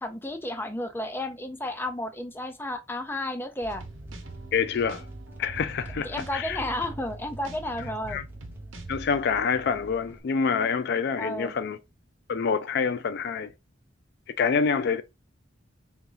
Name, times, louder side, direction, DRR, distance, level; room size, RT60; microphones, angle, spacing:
voice 1, 0.0-3.8 6.0-8.2 11.2-11.5, left 1 dB, 10° left, 0.6 m, -32 dB
sound 1, 3.6-10.2, right 1 dB, 10° right, 0.9 m, -45 dB
sound 2, 3.7-9.0, right 2 dB, 80° right, 0.9 m, -44 dB
voice 2, 4.5-5.0 5.4-6.6 7.8-8.3 8.9-11.8 12.3-13.5 14.4-15.0, left 6 dB, 60° left, 0.4 m, -27 dB
4.0 x 2.8 x 3.8 m
head